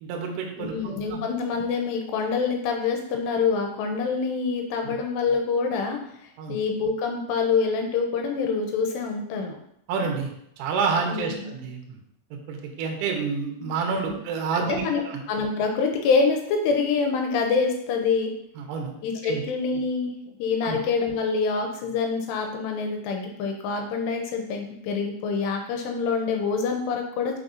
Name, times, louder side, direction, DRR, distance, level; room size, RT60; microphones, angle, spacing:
voice 1, 0.0-1.2 4.8-4.9 6.4-6.6 9.9-10.3 10.6-12.0 12.5-15.2 18.6-18.9 19.2-19.4 20.6-20.8, right 5 dB, 85° right, 1 dB, 1.8 m, -29 dB
voice 2, 0.6-6.0 6.5-9.6 11.1-11.4 13.9-14.2 14.8-15.0 15.3-18.3 19.0-20.1 20.4-27.4, left 5 dB, 85° left, 3 dB, 2.6 m, -26 dB
6.4 x 5.9 x 2.7 m, 0.74 s
omnidirectional pair, 5.3 m